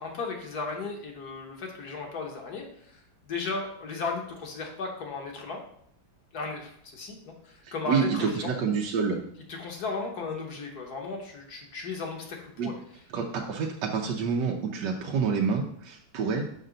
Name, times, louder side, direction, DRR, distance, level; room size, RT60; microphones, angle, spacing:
voice 1, 0.0-3.0 3.2-5.6 6.3-8.5 9.5-12.7, left 3 dB, 65° left, 1 dB, 1.6 m, -35 dB
voice 2, 7.6-9.2 12.6-12.7 13.1-16.4, right 5 dB, 85° right, 1 dB, 1.4 m, -28 dB
6.0 x 5.4 x 3.9 m, 0.67 s
omnidirectional pair, 1.9 m